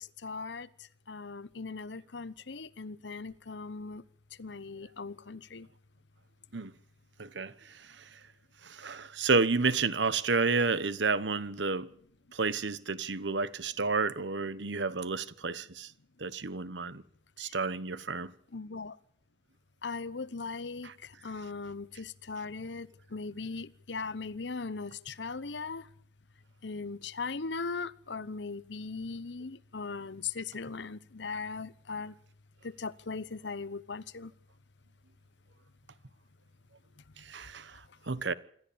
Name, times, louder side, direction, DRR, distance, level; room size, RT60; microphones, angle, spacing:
voice 1, 0.0-4.0 4.4-5.7 17.4-17.6 18.5-19.0 19.8-25.9 26.6-32.1 32.6-34.3, left 4 dB, 75° left, 0.9 m, -39 dB
voice 2, 7.2-8.0 8.6-11.9 12.3-15.9 16.2-17.0 17.4-18.3 20.8-20.9 37.2-38.3, right 4 dB, 80° right, 1.2 m, -31 dB
26.5 x 13.0 x 8.7 m
head